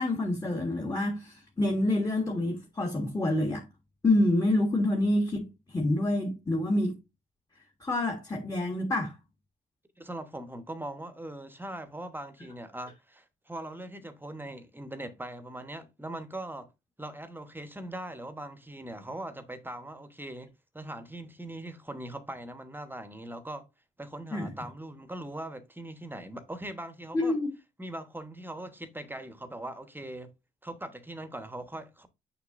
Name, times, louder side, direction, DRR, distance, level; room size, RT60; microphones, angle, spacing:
voice 1, 0.0-3.6 4.0-7.0 7.8-9.2 24.3-24.5 27.1-27.5, left 1 dB, 20° left, 1.6 m, -27 dB
voice 2, 10.0-16.7 17.0-23.7 24.0-27.4 27.8-30.3 30.6-32.1, right 1 dB, 10° right, 1.1 m, -41 dB
6.7 x 6.3 x 2.6 m
cardioid pair, 90°, 20 cm